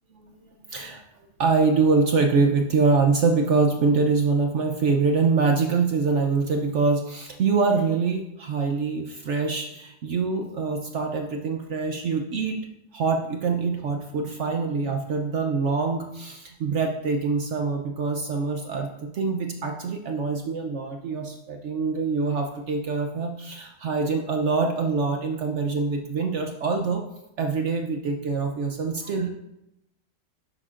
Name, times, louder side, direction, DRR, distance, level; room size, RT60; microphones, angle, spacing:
voice 1, 0.7-1.0 1.4-12.6 12.9-27.0 27.4-29.3, right 4 dB, 75° right, 3 dB, 0.6 m, -24 dB
10.5 x 6.9 x 2.5 m, 0.86 s
omnidirectional pair, 2.0 m